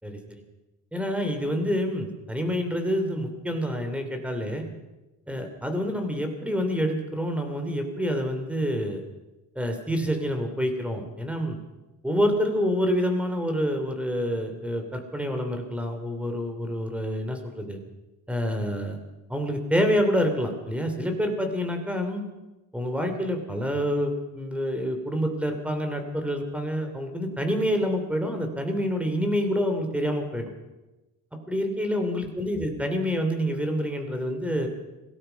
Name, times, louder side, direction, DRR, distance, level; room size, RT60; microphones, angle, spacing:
voice 1, 0.0-0.4 0.9-4.7 5.3-9.0 9.5-11.6 12.0-17.8 18.3-19.0 19.3-22.2 22.7-30.5 31.5-34.7, equal, 5° right, 5 dB, 3.0 m, -27 dB
25.5 x 18.0 x 5.8 m, 1.1 s
cardioid pair, 155°, 36 cm